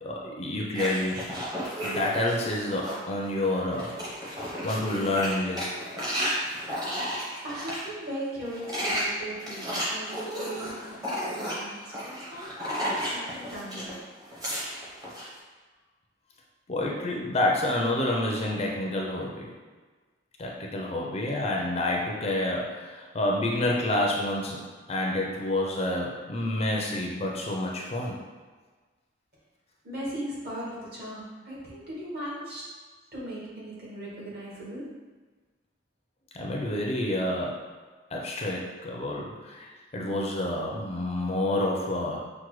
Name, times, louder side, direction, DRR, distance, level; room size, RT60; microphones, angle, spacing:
voice 1, 0.0-1.3 1.8-4.0 4.6-5.7 16.7-19.5 20.4-28.2 36.3-37.7 38.1-42.2, left 1 dB, 30° left, -1 dB, 0.4 m, -28 dB
sound 1, 0.7-3.1 3.5-7.8 8.4-13.9 14.2-15.3, equal, 20° right, 0.8 m, -33 dB
voice 2, 7.4-14.0 29.8-32.6 33.1-34.8, right 1 dB, 50° right, -7 dB, 1.4 m, -38 dB
5.9 x 2.1 x 3.1 m, 1.4 s
head